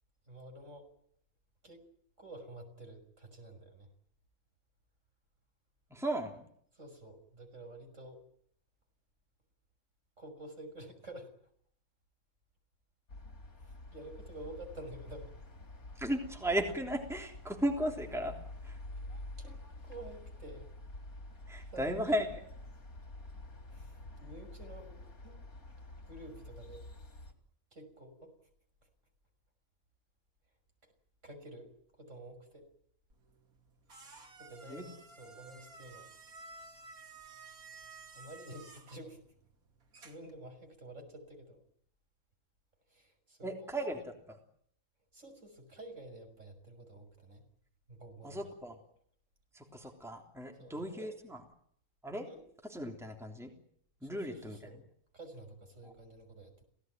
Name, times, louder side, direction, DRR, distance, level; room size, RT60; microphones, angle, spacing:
voice 1, 0.2-0.8 1.6-1.8 2.2-3.9 6.7-8.2 10.2-11.3 13.6-15.3 18.9-20.7 21.7-22.0 23.7-25.3 26.1-26.8 27.7-28.5 28.8-28.9 30.8-30.9 31.2-32.7 34.0-36.3 38.1-39.2 40.0-41.6 42.9-43.7 45.1-47.4 47.9-48.4 50.6-51.1 52.3-52.4 54.0-54.8 55.1-56.6, right 1 dB, 60° right, 5 dB, 6.4 m, -50 dB
voice 2, 5.9-6.4 15.9-18.4 18.6-18.8 21.5-22.3 34.7-34.8 43.4-44.0 48.2-48.7 49.5-51.4 52.0-52.3 52.7-53.5 54.0-54.7 55.8-55.9, equal, ahead, 3 dB, 3.3 m, -35 dB
sound 1, 13.1-27.3, left 2 dB, 85° left, 4.1 m, -48 dB
sound 2, 33.1-40.4, right 3 dB, 90° right, 3.0 m, -54 dB
28.0 x 18.0 x 9.3 m, 0.67 s
omnidirectional pair, 1.5 m